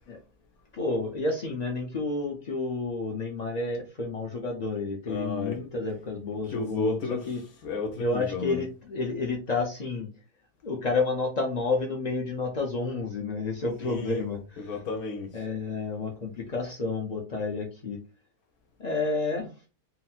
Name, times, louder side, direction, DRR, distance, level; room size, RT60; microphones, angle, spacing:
voice 1, 0.7-7.0 7.3-7.4 8.0-10.1 10.6-14.4 15.3-18.0 18.8-19.5, left 3 dB, 55° left, 0.4 m, -30 dB
voice 2, 5.1-5.6 6.5-7.3 7.6-8.6 13.8-14.3 14.6-15.4, left 3 dB, 75° left, 1.2 m, -32 dB
4.0 x 2.0 x 4.2 m
omnidirectional pair, 1.6 m